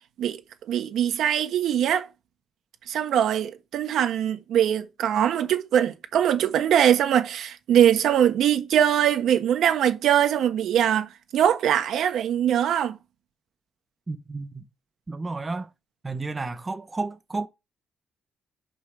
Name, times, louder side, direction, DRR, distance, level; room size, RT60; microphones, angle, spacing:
voice 1, 0.7-2.1 2.9-13.0, right 10 dB, 75° right, 1.1 m, -22 dB
voice 2, 14.1-14.6 15.1-15.7 16.0-17.5, right 3 dB, 25° right, 0.7 m, -32 dB
5.6 x 5.6 x 4.8 m
cardioid pair, 90°, 0 cm